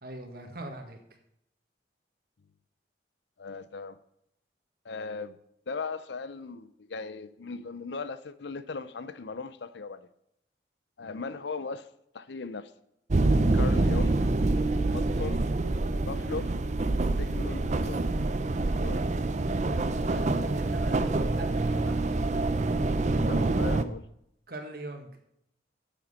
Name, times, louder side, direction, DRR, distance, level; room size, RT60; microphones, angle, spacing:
voice 1, 0.0-1.0 19.7-22.0 24.5-25.1, right 1 dB, 55° right, 1.7 m, -41 dB
voice 2, 3.4-4.0 4.8-5.3 5.7-10.1 11.0-11.9 12.1-12.7 13.5-14.2 14.9-15.5 16.0-16.6 17.2-18.1 18.8-19.2 23.3-24.0, left 4 dB, 75° left, 0.6 m, -38 dB
sound 1, 13.1-23.8, right 2 dB, 40° right, 0.5 m, -26 dB
9.3 x 7.3 x 5.5 m
head